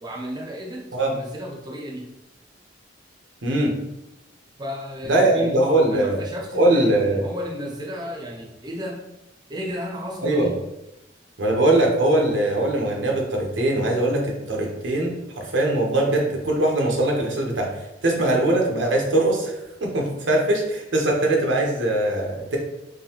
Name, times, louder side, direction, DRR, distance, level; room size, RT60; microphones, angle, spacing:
voice 1, 0.0-2.1 4.6-5.5 5.9-9.0 9.5-10.5, equal, 20° right, -1 dB, 0.5 m, -33 dB
voice 2, 3.4-3.7 5.0-6.3 6.5-7.2 10.2-10.6 11.4-17.7 18.0-19.5 19.8-22.6, right 1 dB, 80° right, 0 dB, 0.9 m, -21 dB
3.8 x 3.2 x 2.9 m, 0.90 s
head